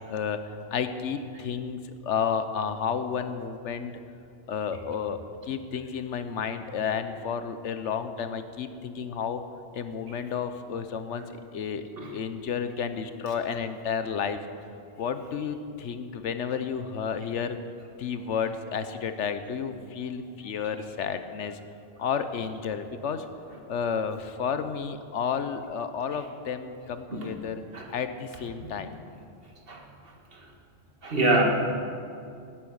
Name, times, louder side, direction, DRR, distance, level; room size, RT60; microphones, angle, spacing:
voice 1, 0.1-0.4 0.7-3.9 4.5-5.2 5.5-9.4 9.7-11.3 11.5-11.8 12.1-14.4 15.0-17.6 18.0-21.6 22.0-23.3 23.7-27.6 27.9-28.9, left 7 dB, 80° left, 10 dB, 1.1 m, -31 dB
voice 2, 31.0-31.4, right 2 dB, 50° right, 1 dB, 1.9 m, -26 dB
17.5 x 9.2 x 6.4 m, 2.5 s
omnidirectional pair, 1.2 m